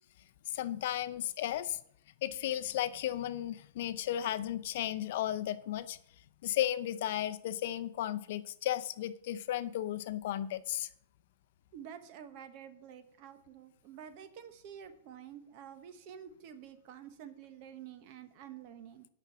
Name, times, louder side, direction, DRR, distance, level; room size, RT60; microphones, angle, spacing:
voice 1, 0.5-1.8 2.2-6.0 6.4-10.9, left 12 dB, 55° left, 0.6 m, -34 dB
voice 2, 11.7-19.1, right 9 dB, 40° right, 1.1 m, -49 dB
9.8 x 6.1 x 5.9 m
supercardioid pair, 165°, 0 cm